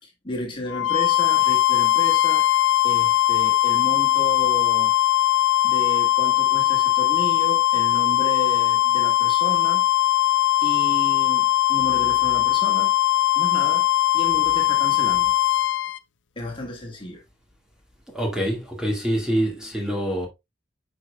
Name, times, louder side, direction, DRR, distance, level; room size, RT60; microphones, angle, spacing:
voice 1, 0.0-2.5 2.8-5.0 5.6-9.8 10.6-13.0 13.4-15.3 16.4-17.2, left 1 dB, 25° left, 1.8 m, -32 dB
sound 1, 0.7-16.0, left 15 dB, 70° left, 0.6 m, -20 dB
voice 2, 18.1-20.3, equal, 5° right, 1.8 m, -25 dB
9.3 x 5.1 x 2.3 m
head